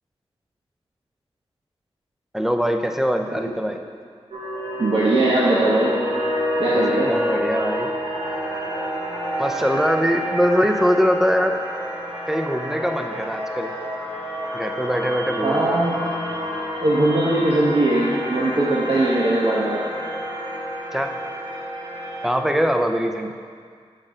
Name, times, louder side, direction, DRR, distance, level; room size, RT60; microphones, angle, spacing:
voice 1, 2.3-3.8 6.7-7.9 9.4-11.6 12.3-13.7 14.5-15.8 20.9-21.1 22.2-23.3, equal, 5° right, 5 dB, 0.7 m, -22 dB
sound 1, 4.3-22.3, equal, 90° right, 2.1 m, -28 dB
voice 2, 4.8-5.9 6.6-7.1 15.4-16.0 16.8-19.8, right 2 dB, 60° right, -6 dB, 1.2 m, -20 dB
7.5 x 6.4 x 5.1 m, 2.1 s
cardioid pair, 50°, 10 cm